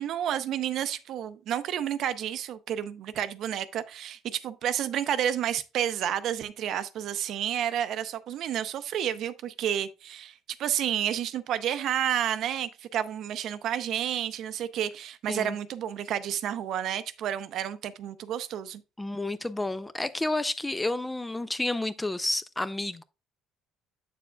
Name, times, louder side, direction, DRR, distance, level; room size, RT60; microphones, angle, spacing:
voice 1, 0.0-18.8, right 10 dB, 55° right, 0.6 m, -30 dB
voice 2, 19.0-23.0, left 2 dB, 10° left, 0.3 m, -30 dB
8.3 x 6.9 x 2.2 m
cardioid pair, 140°, 0 cm